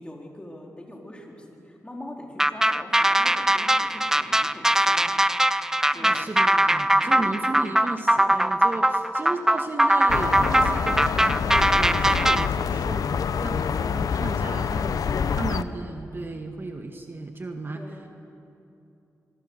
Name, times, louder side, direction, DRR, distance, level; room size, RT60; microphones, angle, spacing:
voice 1, 0.0-5.1 5.9-6.2 7.0-7.3 15.1-15.5 17.7-18.1, left 1 dB, 15° left, 0 dB, 4.3 m, -41 dB
sound 1, 2.4-12.5, right 1 dB, 10° right, 0.6 m, -21 dB
voice 2, 5.9-15.0 15.4-17.8, right 3 dB, 35° right, 4 dB, 1.6 m, -35 dB
sound 2, 10.1-15.6, left 7 dB, 75° left, 0.7 m, -26 dB
24.5 x 23.5 x 6.6 m, 2.7 s
cardioid pair, 80°, 6 cm